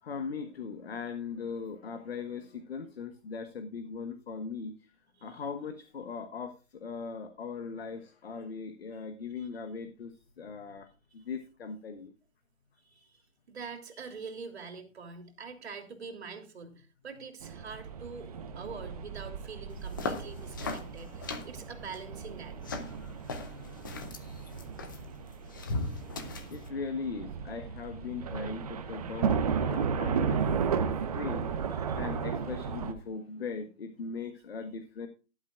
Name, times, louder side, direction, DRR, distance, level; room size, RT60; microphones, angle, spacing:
voice 1, 0.0-4.9 5.2-10.9 11.1-12.1 26.5-30.5 31.1-31.5 31.9-35.1, left 5 dB, 50° left, 8 dB, 1.3 m, -39 dB
voice 2, 12.8-18.3 18.5-22.6 24.4-24.5 31.8-32.0, right 5 dB, 55° right, 5 dB, 3.0 m, -45 dB
sound 1, 17.4-32.9, right 6 dB, 30° right, 1.0 m, -34 dB
sound 2, 19.7-26.7, left 3 dB, 15° left, 0.7 m, -39 dB
14.5 x 11.5 x 2.4 m, 0.33 s
hypercardioid pair, 155°, 39 cm